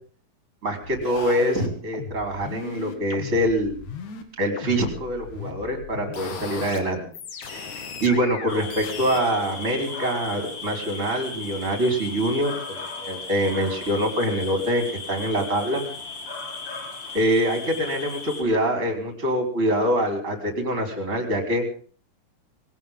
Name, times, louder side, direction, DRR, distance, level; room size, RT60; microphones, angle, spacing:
voice 1, 0.6-3.8 4.4-7.1 7.4-15.8 17.1-21.6, equal, 20° right, 4 dB, 4.6 m, -25 dB
sound 1, 0.8-4.2 4.6-6.8 7.1-9.2, left 5 dB, 55° left, 3.2 m, -37 dB
sound 2, 8.5-18.4, left 4 dB, 35° left, 4.2 m, -36 dB
21.0 x 17.5 x 3.8 m, 0.43 s
omnidirectional pair, 4.3 m